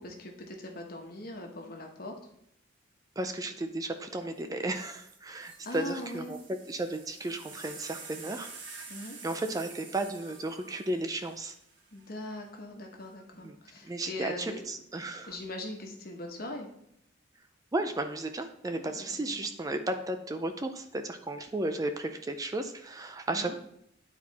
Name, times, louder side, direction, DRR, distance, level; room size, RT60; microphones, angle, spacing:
voice 1, 0.0-2.2 5.6-6.4 8.9-9.2 11.9-14.6 15.3-16.7 18.7-19.4 23.3-23.5, left 1 dB, 50° left, 2 dB, 1.2 m, -41 dB
voice 2, 3.2-6.4 6.7-8.5 9.2-11.5 13.4-13.6 13.8-15.4 17.7-23.5, right 2 dB, 20° right, 7 dB, 0.4 m, -34 dB
sound 1, 4.3-4.4 4.7-12.1 13.0-13.5, right 4 dB, 70° right, 1.4 m, -49 dB
9.6 x 4.3 x 4.1 m, 0.75 s
head